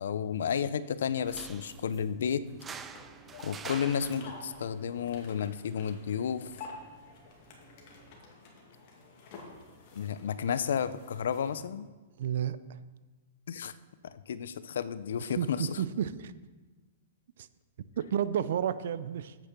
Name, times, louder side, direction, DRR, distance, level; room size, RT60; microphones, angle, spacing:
voice 1, 0.0-2.4 3.4-6.5 9.9-11.9 13.5-13.7 14.0-15.8, left 7 dB, 75° left, 15 dB, 0.5 m, -32 dB
sound 1, 1.2-8.2, right 6 dB, 20° right, 0.5 m, -49 dB
sound 2, 2.7-11.6, left 3 dB, 50° left, 2.1 m, -50 dB
voice 2, 12.2-12.8 15.2-16.3 17.4-17.5 18.0-19.4, right 9 dB, 65° right, 15 dB, 0.5 m, -31 dB
8.4 x 6.5 x 6.0 m, 1.3 s
hypercardioid pair, 135°, 0 cm